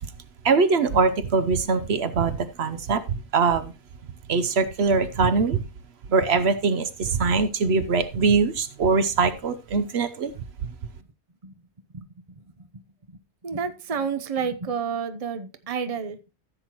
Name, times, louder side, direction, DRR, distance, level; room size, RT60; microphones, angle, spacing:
voice 1, 0.4-3.7 4.3-5.6 6.1-10.3, right 4 dB, 70° right, 12 dB, 1.0 m, -22 dB
voice 2, 11.9-12.8 13.1-16.2, right 6 dB, 35° right, 10 dB, 0.8 m, -31 dB
14.5 x 7.9 x 3.0 m, 0.27 s
omnidirectional pair, 1.2 m